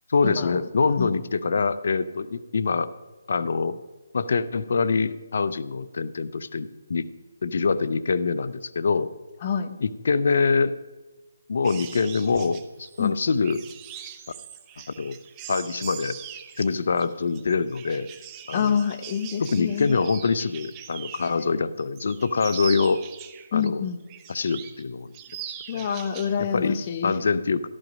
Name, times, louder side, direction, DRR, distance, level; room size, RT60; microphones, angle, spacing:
voice 1, 0.1-2.9 3.3-3.8 4.1-7.1 7.4-9.1 9.8-10.7 11.5-13.6 15.0-15.2 15.5-16.2 16.6-18.1 18.5-18.8 19.4-23.0 23.5-23.8 24.3-25.1 25.5-25.9 26.5-26.8 27.0-27.7, left 4 dB, 60° left, 15 dB, 0.7 m, -24 dB
voice 2, 9.4-9.8 13.0-13.1 18.5-20.0 23.5-24.0 25.7-27.1, left 7 dB, 35° left, 10 dB, 0.9 m, -27 dB
sound 1, 11.6-21.5 21.8-23.7 24.1-24.8 25.1-26.4 26.7-26.9, right 10 dB, 20° right, 0.8 m, -41 dB
14.0 x 12.0 x 5.2 m, 1.2 s
hypercardioid pair, 160°, 0 cm